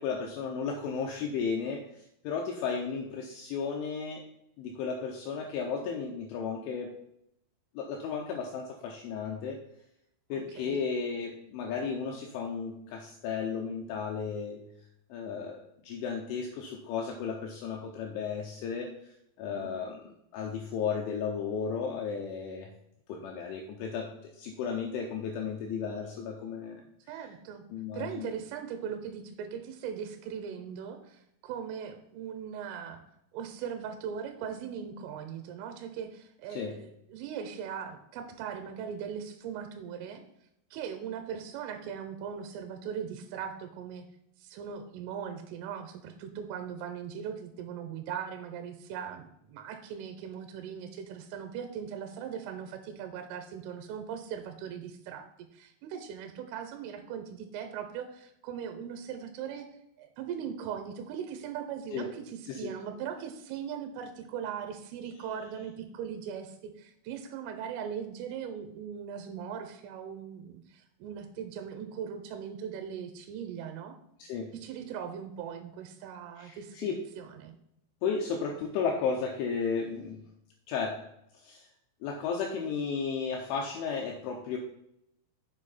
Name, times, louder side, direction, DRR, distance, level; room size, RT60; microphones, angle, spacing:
voice 1, 0.0-4.2 4.6-6.9 7.7-9.6 10.3-14.6 15.1-18.9 19.4-20.1 20.3-22.7 23.1-26.8 27.1-27.3 27.7-28.3 36.5-36.7 61.9-62.1 62.5-62.7 74.2-74.5 76.4-77.0 78.0-80.2 80.7-81.0 81.3-81.7 82.0-84.6, left 6 dB, 80° left, 1 dB, 3.1 m, -34 dB
voice 2, 10.3-10.8 19.5-19.7 27.1-27.7 27.9-33.0 33.3-40.2 40.7-44.1 44.4-59.7 60.0-74.0 74.5-77.5, right 8 dB, 80° right, 7 dB, 3.3 m, -39 dB
7.7 x 6.9 x 4.2 m, 0.77 s
omnidirectional pair, 5.9 m